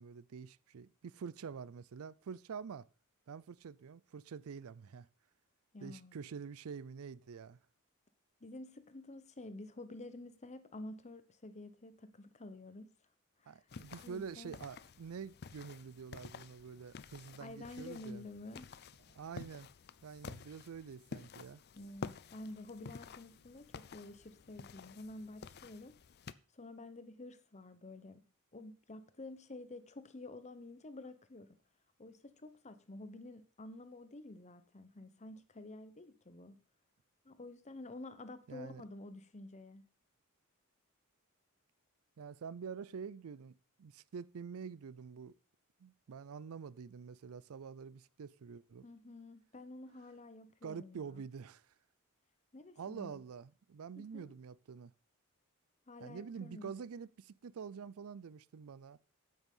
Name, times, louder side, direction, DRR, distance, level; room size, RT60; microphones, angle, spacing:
voice 1, 0.0-2.9 3.3-5.1 5.8-7.6 13.5-18.3 19.2-19.7 20.0-21.6 38.5-38.8 42.2-45.3 45.8-48.9 50.6-51.6 52.8-54.9 56.0-59.0, right 6 dB, 70° right, 0.4 m, -47 dB
voice 2, 5.7-6.2 8.4-12.9 13.4-13.6 14.0-14.6 17.4-18.8 21.7-26.0 26.5-28.2 28.5-31.6 32.0-36.6 37.2-39.8 48.8-51.2 52.5-53.2 53.9-54.3 55.9-56.7, left 2 dB, 30° left, 0.9 m, -50 dB
sound 1, 13.7-26.3, left 5 dB, 45° left, 0.5 m, -51 dB
9.3 x 8.8 x 5.4 m
head